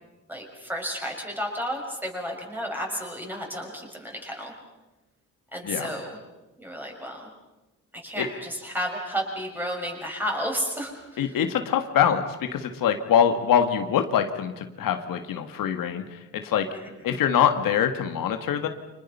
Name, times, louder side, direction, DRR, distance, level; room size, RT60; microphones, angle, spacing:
voice 1, 0.3-4.5 5.5-6.2 6.6-7.3 7.9-11.4 16.7-16.9, equal, 5° right, 0 dB, 6.3 m, -32 dB
voice 2, 11.2-16.7 17.0-18.7, left 8 dB, 90° left, 6 dB, 1.9 m, -24 dB
30.0 x 26.0 x 5.6 m, 1.1 s
cardioid pair, 140°, 32 cm